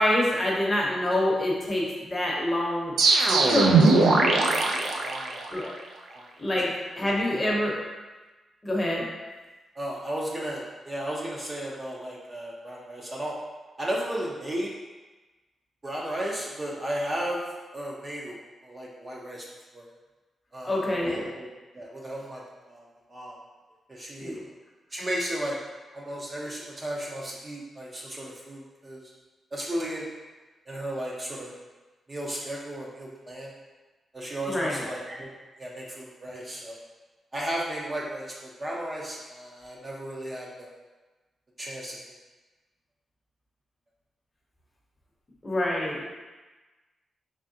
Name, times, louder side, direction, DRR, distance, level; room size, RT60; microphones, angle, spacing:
voice 1, 0.0-2.9 3.3-3.7 5.5-5.7 6.4-7.8 8.6-9.1 20.6-21.3 24.2-24.4 34.5-34.8 45.4-46.0, left 1 dB, 20° left, -3 dB, 0.7 m, -26 dB
sound 1, 3.0-5.8, right 3 dB, 90° right, 0.4 m, -20 dB
voice 2, 5.0-5.5 6.1-6.2 7.0-7.1 9.8-13.4 13.8-14.7 15.8-17.4 17.7-18.4 18.6-19.5 19.7-19.9 20.5-21.5 21.7-22.4 22.7-22.8 23.1-23.4 23.9-24.4 24.9-25.6 25.9-29.0 29.5-30.1 30.7-31.5 32.1-33.5 34.1-35.3 35.6-36.8 37.3-40.8 41.6-42.0, right 1 dB, 25° right, -3 dB, 0.4 m, -34 dB
3.6 x 3.2 x 2.6 m, 1.2 s
wide cardioid pair, 130°, 0 cm